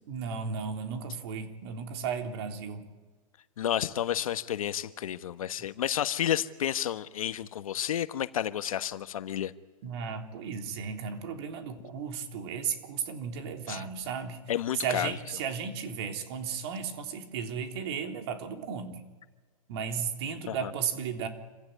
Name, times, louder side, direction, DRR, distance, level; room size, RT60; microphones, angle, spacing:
voice 1, 0.1-2.9 9.8-19.0 19.7-21.3, right 6 dB, 45° right, 5 dB, 3.5 m, -35 dB
voice 2, 3.6-9.5 13.7-13.8 14.5-15.2 20.5-20.7, left 10 dB, 75° left, 11 dB, 1.4 m, -31 dB
27.0 x 15.5 x 9.5 m, 1.3 s
hypercardioid pair, 160°, 18 cm